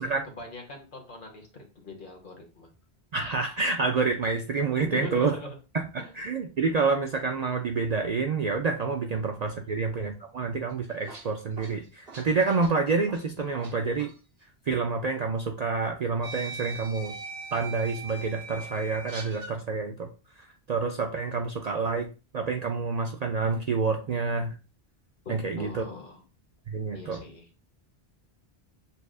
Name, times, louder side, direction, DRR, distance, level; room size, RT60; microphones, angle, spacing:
voice 1, 0.0-2.7 4.8-5.6 6.0-6.1 9.6-9.7 25.2-26.2 26.9-27.5, left 3 dB, 55° left, 2 dB, 1.2 m, -41 dB
voice 2, 3.1-5.4 5.7-5.8 6.2-14.1 14.7-17.1 17.5-20.1 20.7-22.1 22.3-24.5 25.3-25.8 26.7-27.2, right 4 dB, 55° right, 4 dB, 0.5 m, -28 dB
sound 1, 10.7-13.7 14.0-14.2 15.3-15.4 16.2-19.6, right 3 dB, 70° right, 1.3 m, -41 dB
6.8 x 2.4 x 2.3 m, 0.33 s
omnidirectional pair, 1.1 m